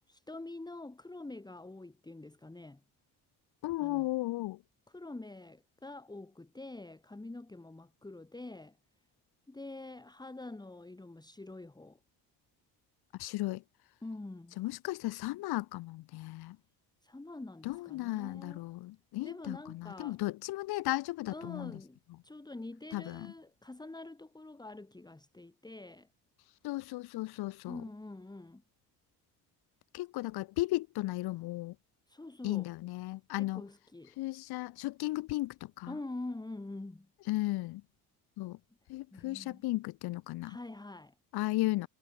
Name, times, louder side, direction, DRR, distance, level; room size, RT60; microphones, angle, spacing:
voice 1, 0.0-2.8 3.8-4.1 4.9-8.8 9.5-12.0 14.0-14.6 17.0-18.6 19.2-20.2 21.3-22.0 22.2-26.1 27.7-28.6 32.1-32.7 33.3-34.2 35.9-37.1 39.1-39.6 40.4-41.1, left 2 dB, 10° left, 1.7 m, -45 dB
voice 2, 3.6-4.6 13.2-13.6 14.6-16.6 17.6-21.8 22.9-23.3 26.6-27.8 29.9-31.8 32.4-33.6 34.2-36.0 37.3-37.8 38.4-38.6 38.9-40.6 41.3-41.9, left 18 dB, 70° left, 0.7 m, -35 dB
cardioid pair, 85°, 40 cm